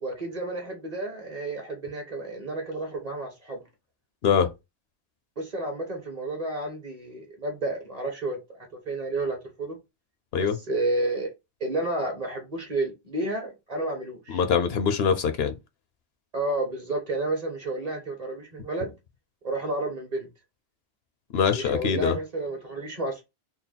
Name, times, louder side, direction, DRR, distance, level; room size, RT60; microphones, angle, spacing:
voice 1, 0.0-3.6 5.4-9.8 10.4-11.3 11.6-14.4 16.3-18.9 19.4-20.3 21.5-23.2, right 2 dB, 40° right, 1.2 m, -31 dB
voice 2, 14.3-15.5 21.3-22.2, left 7 dB, 70° left, 0.8 m, -23 dB
3.9 x 2.0 x 4.0 m
omnidirectional pair, 1.1 m